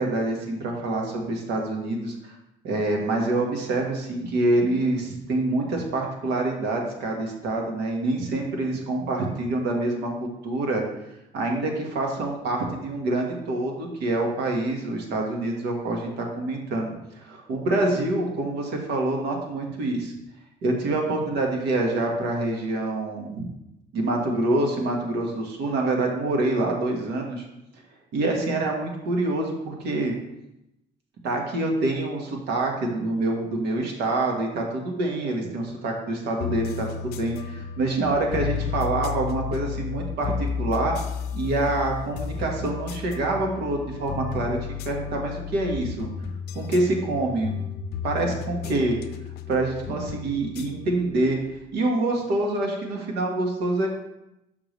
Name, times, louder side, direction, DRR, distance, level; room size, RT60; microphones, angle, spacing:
voice 1, 0.0-2.4 2.6-10.8 11.3-16.9 17.1-20.1 20.6-23.5 23.9-27.4 28.1-30.1 31.2-40.9 41.3-44.6 44.8-46.1 46.5-47.6 48.0-49.0 49.5-51.4 51.7-53.9, right 2 dB, 80° right, 1 dB, 1.5 m, -26 dB
sound 1, 36.4-51.7, left 8 dB, 70° left, 0.5 m, -33 dB
6.6 x 5.9 x 3.1 m, 0.88 s
cardioid pair, 110°, 17 cm